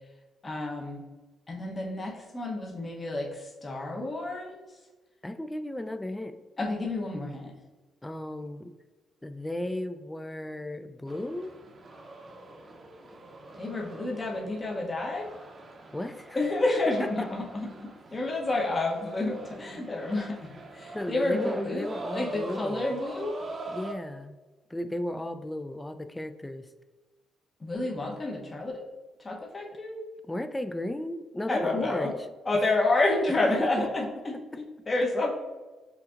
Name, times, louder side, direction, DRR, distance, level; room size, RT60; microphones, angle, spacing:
voice 1, 0.4-1.0 1.5-4.7 6.6-7.5 13.6-15.3 16.3-23.4 27.6-28.8 29.2-30.0 31.5-32.1 32.4-35.4, left 2 dB, 30° left, -2 dB, 0.9 m, -30 dB
voice 2, 5.2-6.4 8.0-8.7 9.2-11.5 15.9-16.4 20.9-22.9 23.7-24.4 24.7-26.7 30.2-32.1 33.4-33.9 34.3-34.6, left 1 dB, 10° left, 10 dB, 0.3 m, -35 dB
sound 1, 11.1-23.9, right 2 dB, 40° right, 0.7 m, -43 dB
6.8 x 2.7 x 2.5 m, 1.2 s
cardioid pair, 90°, 0 cm